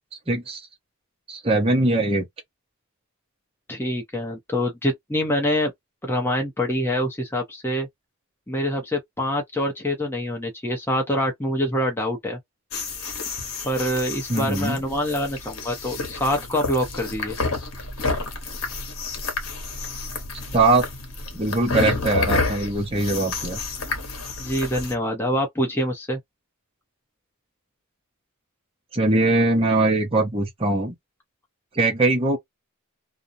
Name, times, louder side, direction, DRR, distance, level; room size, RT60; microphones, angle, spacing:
voice 1, 0.3-0.6 1.3-2.3 14.3-14.8 20.5-20.8 21.3-23.6 28.9-30.9 31.7-32.4, right 2 dB, 25° right, 0.8 m, -21 dB
voice 2, 3.7-5.7 6.0-7.9 8.5-12.4 13.6-17.4 24.4-26.2, equal, 10° left, 0.6 m, -25 dB
sound 1, 12.7-24.9, left 3 dB, 70° left, 0.9 m, -30 dB
2.4 x 2.0 x 2.6 m
head